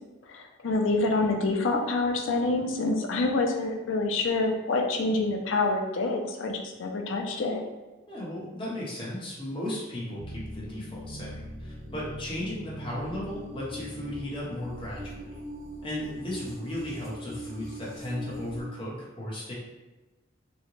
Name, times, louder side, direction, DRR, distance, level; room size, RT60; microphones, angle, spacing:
voice 1, 0.3-7.6, left 3 dB, 70° left, 2 dB, 0.4 m, -27 dB
voice 2, 8.1-15.4 15.8-19.5, left 1 dB, 25° left, -5 dB, 0.9 m, -36 dB
sound 1, 10.2-18.6, equal, 15° right, 1.0 m, -41 dB
3.6 x 2.1 x 3.0 m, 1.2 s
head